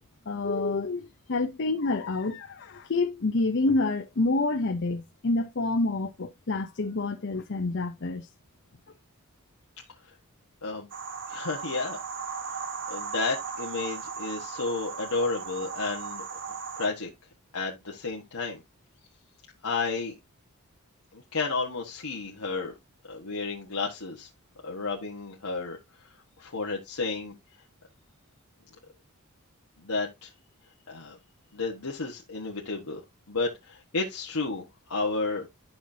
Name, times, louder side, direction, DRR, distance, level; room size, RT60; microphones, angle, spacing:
voice 1, 0.3-8.3, left 3 dB, 55° left, 0.7 m, -28 dB
sound 1, 10.9-16.9, right 5 dB, 55° right, 1.2 m, -37 dB
voice 2, 11.3-12.0 12.9-16.2 16.8-17.1 17.5-18.6 19.6-20.1 21.1-22.7 23.1-24.3 24.6-25.8 26.4-27.3 29.8-30.3 30.9-31.2 31.5-33.0 33.3-35.5, left 3 dB, 85° left, 1.3 m, -32 dB
11.0 x 5.9 x 2.7 m
head